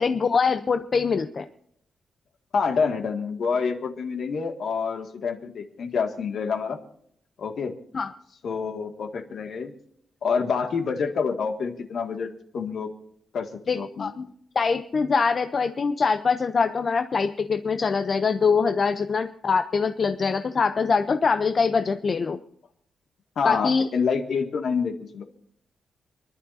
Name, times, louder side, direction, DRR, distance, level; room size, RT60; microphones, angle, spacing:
voice 1, 0.0-1.5 7.9-8.1 13.7-14.3 14.6-22.4 23.4-23.9, left 5 dB, 40° left, 9 dB, 0.6 m, -23 dB
voice 2, 2.5-6.8 7.4-7.7 8.4-9.7 10.2-12.9 13.3-13.5 13.7-14.1 23.4-25.2, left 5 dB, 60° left, 4 dB, 2.0 m, -27 dB
29.0 x 11.5 x 2.7 m, 0.68 s
wide cardioid pair, 140°, 0 cm